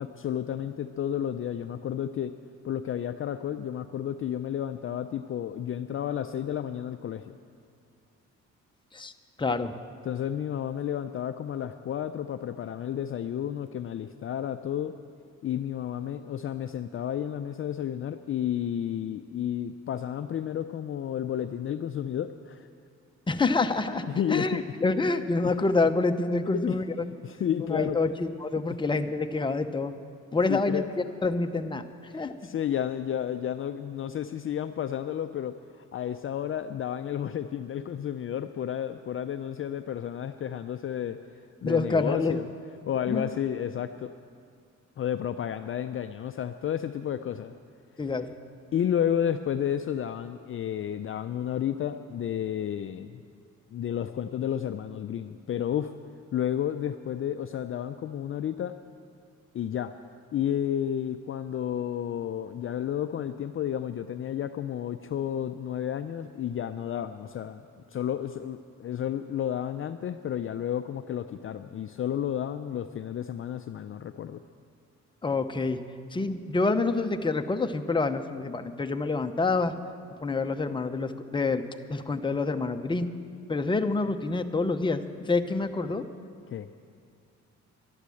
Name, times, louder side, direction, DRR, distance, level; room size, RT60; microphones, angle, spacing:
voice 1, 0.0-2.3 2.6-7.4 10.0-14.9 15.4-22.7 24.1-24.6 25.4-25.5 26.7-26.8 27.2-28.0 30.5-30.9 32.1-41.2 41.6-42.5 42.9-44.1 45.0-47.5 48.7-53.2 53.7-55.9 56.3-58.7 59.5-59.9 60.3-67.6 67.9-74.4 86.5-86.7, left 10 dB, 45° left, 9 dB, 0.5 m, -31 dB
voice 2, 9.4-9.7 23.3-26.8 27.7-29.9 30.3-31.8 32.1-32.3 41.6-42.4 43.1-43.2 48.0-48.3 75.2-75.8 76.1-79.7 80.2-81.6 81.9-83.1 83.5-85.0 85.3-86.0, left 3 dB, 15° left, 7 dB, 0.8 m, -27 dB
11.5 x 11.5 x 7.7 m, 2.3 s
cardioid pair, 90°, 30 cm